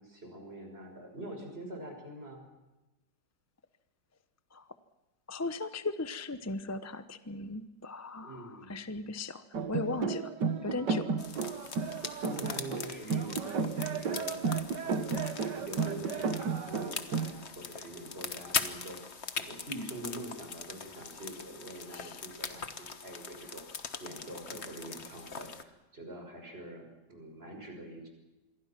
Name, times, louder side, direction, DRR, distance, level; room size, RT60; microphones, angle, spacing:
voice 1, 0.0-2.5 8.2-8.9 12.2-15.3 15.5-19.0 19.3-23.6 24.0-28.1, right 1 dB, 35° right, 3 dB, 6.2 m, -45 dB
voice 2, 5.3-9.4 9.7-10.3 10.6-11.1 21.9-22.2, left 3 dB, 15° left, 11 dB, 0.7 m, -37 dB
sound 1, 9.5-17.3, right 5 dB, 85° right, 2.2 m, -33 dB
sound 2, 11.2-25.6, left 5 dB, 40° left, 1.5 m, -41 dB
27.5 x 22.5 x 6.0 m, 1.0 s
omnidirectional pair, 1.8 m